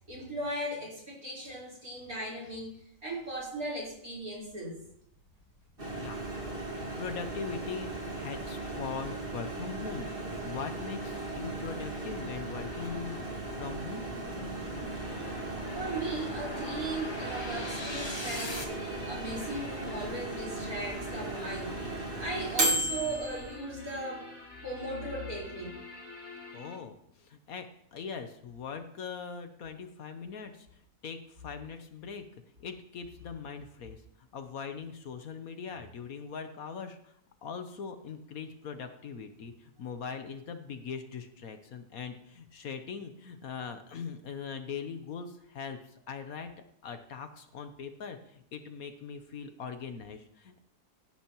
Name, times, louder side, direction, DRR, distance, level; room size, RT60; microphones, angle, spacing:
voice 1, 0.1-4.8 15.7-24.3 24.6-25.7, right 1 dB, 60° right, -3 dB, 4.8 m, -37 dB
sound 1, 4.5-18.6, left 1 dB, 20° left, 1.1 m, -45 dB
Microwave oven, 5.8-23.6, right 2 dB, 35° right, 2.2 m, -36 dB
voice 2, 5.9-6.3 7.0-13.2 13.5-14.0 26.5-32.2 32.6-37.2 37.4-46.5 46.8-50.6, left 6 dB, 65° left, 8 dB, 1.2 m, -41 dB
sound 2, 14.8-26.8, left 2 dB, 85° left, 5.1 m, -47 dB
16.0 x 10.5 x 3.0 m, 0.72 s
omnidirectional pair, 1.8 m